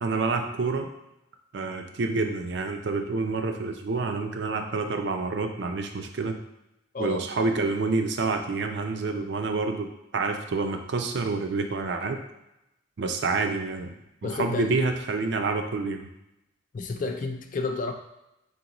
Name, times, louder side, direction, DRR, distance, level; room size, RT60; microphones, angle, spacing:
voice 1, 0.0-0.9 1.5-6.4 7.0-12.2 13.0-13.9 14.2-16.1, right 3 dB, 60° right, 5 dB, 0.4 m, -28 dB
voice 2, 6.9-7.3 14.2-14.7 16.7-17.9, left 3 dB, 40° left, 5 dB, 0.4 m, -30 dB
3.9 x 3.8 x 2.9 m, 0.88 s
head